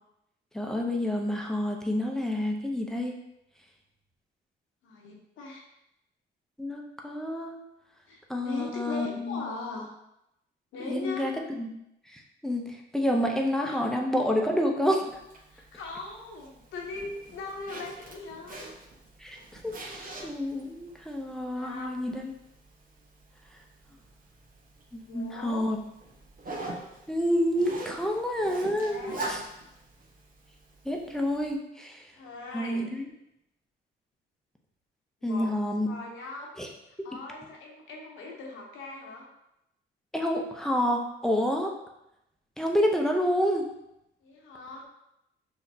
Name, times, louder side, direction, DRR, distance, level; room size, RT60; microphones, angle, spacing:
voice 1, 0.5-3.2 6.6-7.6 8.3-9.4 10.8-11.3 11.6-11.7 12.1-15.1 19.2-22.3 24.9-25.8 27.1-29.4 30.8-32.0 32.5-33.0 35.2-35.9 36.6-36.7 40.1-41.7 42.6-43.6, equal, ahead, 1 dB, 0.8 m, -28 dB
voice 2, 4.8-5.7 8.1-9.9 10.7-11.3 13.7-13.8 15.5-18.7 21.5-22.2 25.1-25.7 28.7-29.4 32.1-32.9 35.2-35.5 35.8-36.5 36.9-39.3 44.2-44.9, left 3 dB, 80° left, 0 dB, 1.1 m, -40 dB
Zipper (clothing), 15.1-31.5, right 2 dB, 45° right, 1.1 m, -44 dB
6.3 x 2.9 x 2.8 m, 0.84 s
cardioid pair, 90°, 20 cm